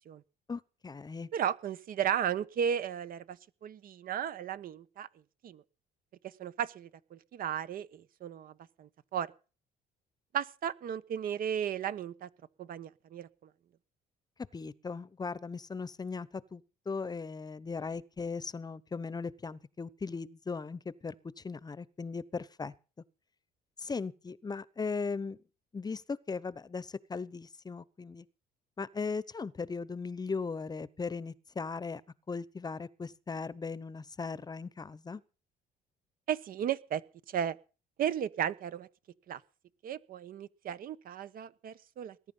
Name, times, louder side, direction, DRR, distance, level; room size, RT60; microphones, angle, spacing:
voice 1, 0.5-1.3 14.5-22.7 23.8-25.4 25.7-28.3 28.8-32.0 32.3-35.2, left 4 dB, 25° left, 0.9 m, -38 dB
voice 2, 1.3-3.4 3.6-5.1 5.4-5.6 6.2-8.5 8.8-9.3 10.3-12.3 12.6-13.3 36.3-37.0 37.3-37.6 38.0-38.9 39.3-39.4 39.8-42.3, right 9 dB, 55° right, 1.2 m, -34 dB
20.0 x 11.0 x 5.6 m
cardioid pair, 110°, 17 cm